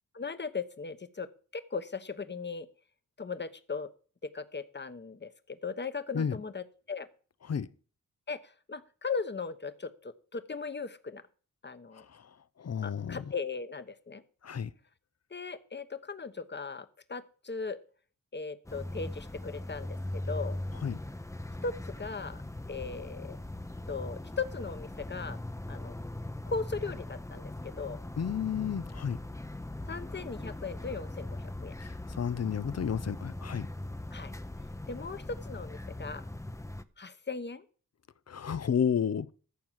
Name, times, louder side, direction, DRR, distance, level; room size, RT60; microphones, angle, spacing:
voice 1, 0.1-2.7 3.2-3.9 4.2-7.1 8.3-11.2 11.6-12.0 12.8-14.2 15.3-17.8 18.3-20.6 21.6-22.4 22.7-23.4 23.9-25.4 25.7-25.9 26.5-28.0 29.9-31.7 34.1-34.3 34.9-36.2 37.0-37.6, left 4 dB, 35° left, 1.1 m, -38 dB
voice 2, 11.9-13.2 14.4-14.7 20.8-21.0 28.2-29.2 31.8-33.7 38.3-39.3, left 7 dB, 50° left, 0.7 m, -32 dB
sound 1, 18.7-36.8, left 1 dB, 10° left, 0.8 m, -40 dB
14.0 x 4.7 x 7.4 m
cardioid pair, 60°, 32 cm